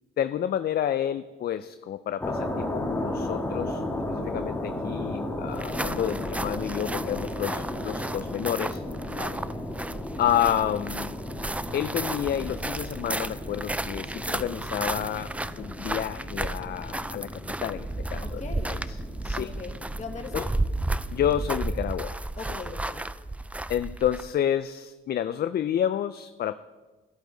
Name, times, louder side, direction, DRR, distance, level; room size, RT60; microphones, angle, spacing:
voice 1, 0.2-3.8 4.1-8.8 10.2-11.1 11.7-15.3 15.6-17.3 17.6-18.4 18.7-19.0 19.2-19.5 20.3-20.4 21.1-22.2 23.7-26.5, left 10 dB, 50° left, 12 dB, 0.5 m, -29 dB
sound 1, 2.2-21.5, left 1 dB, 10° left, 1.7 m, -35 dB
sound 2, 5.5-24.4, right 2 dB, 5° right, 0.4 m, -33 dB
voice 2, 7.4-7.8 9.1-9.7 14.4-14.5 18.2-18.7 19.3-20.5 22.4-23.0, left 4 dB, 35° left, 4 dB, 1.7 m, -40 dB
13.0 x 11.5 x 3.9 m, 1.2 s
cardioid pair, 90°, 20 cm